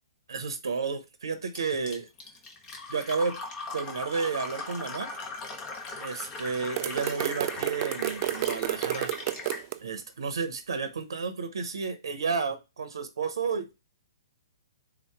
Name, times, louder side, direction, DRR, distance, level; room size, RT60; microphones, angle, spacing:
voice 1, 0.3-2.1 2.9-3.4 3.7-5.1 6.0-9.5 9.8-13.7, right 5 dB, 80° right, 0.8 m, -32 dB
Fill (with liquid), 1.5-9.7, left 3 dB, 25° left, 1.0 m, -39 dB
sound 1, 6.8-9.8, right 15 dB, 40° right, 0.3 m, -30 dB
3.9 x 3.0 x 4.5 m
hypercardioid pair, 145°, 2 cm